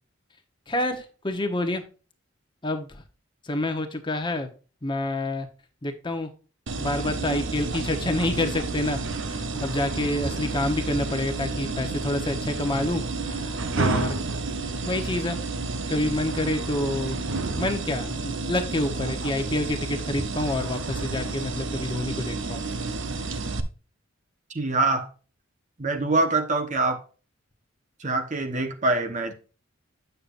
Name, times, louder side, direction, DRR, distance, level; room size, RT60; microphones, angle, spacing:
voice 1, 0.7-1.8 2.6-3.0 3.4-4.5 4.8-5.5 5.8-6.3 6.8-9.0 9.3-14.1 14.8-15.4 15.9-17.2 17.5-22.6, left 1 dB, 25° left, 1.0 m, -28 dB
sound 1, 6.7-23.6, right 3 dB, 65° right, 0.9 m, -30 dB
voice 2, 24.5-25.1 25.8-27.0 28.0-29.3, right 3 dB, 35° right, 1.0 m, -24 dB
8.6 x 6.8 x 2.5 m
head